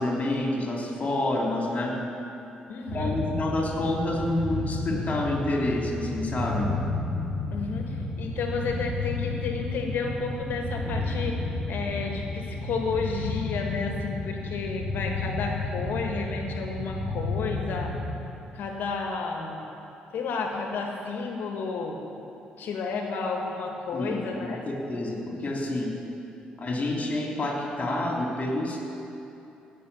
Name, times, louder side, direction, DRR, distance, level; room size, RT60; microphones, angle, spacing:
voice 1, 0.0-2.0 2.9-6.7 23.9-25.9 26.6-28.8, left 1 dB, 40° left, -1 dB, 3.1 m, -28 dB
voice 2, 2.7-3.1 7.5-17.9 18.5-19.6 20.1-22.0 22.6-24.6, left 4 dB, 70° left, 2 dB, 1.6 m, -32 dB
sound 1, 2.9-18.0, left 2 dB, 85° right, 3.6 m, -32 dB
16.0 x 6.7 x 6.9 m, 2.9 s
supercardioid pair, 55°, 3 cm